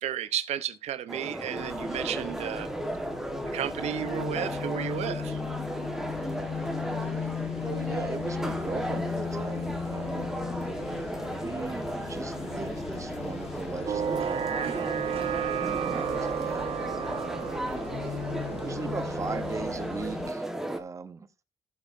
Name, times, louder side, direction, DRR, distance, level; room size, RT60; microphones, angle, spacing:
voice 1, 0.0-2.7 3.5-5.4, right 11 dB, 85° right, 0.8 m, -33 dB
sound 1, 1.1-20.8, right 1 dB, 5° right, 1.3 m, -35 dB
sound 2, 1.6-20.3, left 8 dB, 65° left, 0.9 m, -38 dB
voice 2, 7.5-10.3 11.3-15.0 15.5-16.7 18.5-20.4 20.7-21.4, right 4 dB, 30° right, 0.8 m, -39 dB
sound 3, 13.9-20.2, right 9 dB, 60° right, 0.9 m, -33 dB
16.0 x 7.1 x 2.6 m
cardioid pair, 125°, 11 cm